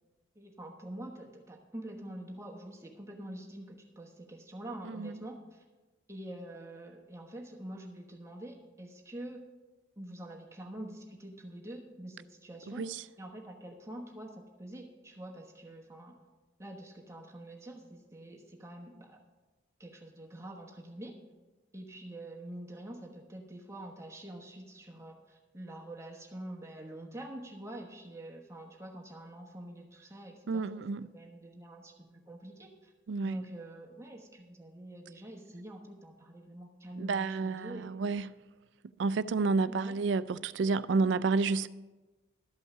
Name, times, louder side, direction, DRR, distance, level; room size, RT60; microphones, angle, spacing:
voice 1, 0.3-5.6 6.1-9.4 10.0-12.9 13.2-16.2 16.6-19.2 19.8-21.1 21.7-30.8 31.1-32.9 33.2-37.9 39.7-40.0, right 1 dB, 15° right, 1.1 m, -46 dB
voice 2, 30.5-31.1 33.1-33.4 37.0-38.3 39.0-41.7, right 4 dB, 85° right, 0.4 m, -30 dB
12.5 x 5.5 x 6.6 m
head